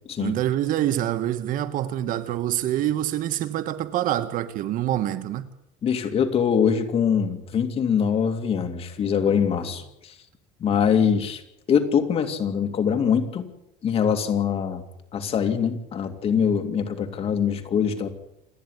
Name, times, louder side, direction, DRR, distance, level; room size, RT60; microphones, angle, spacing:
voice 1, 0.2-5.5, right 12 dB, 50° right, 1.4 m, -26 dB
voice 2, 5.8-10.1 10.6-11.4 11.7-13.4 13.8-14.8 15.1-18.1, left 7 dB, 35° left, 2.5 m, -23 dB
28.0 x 10.5 x 9.6 m
cardioid pair, 150°, 18 cm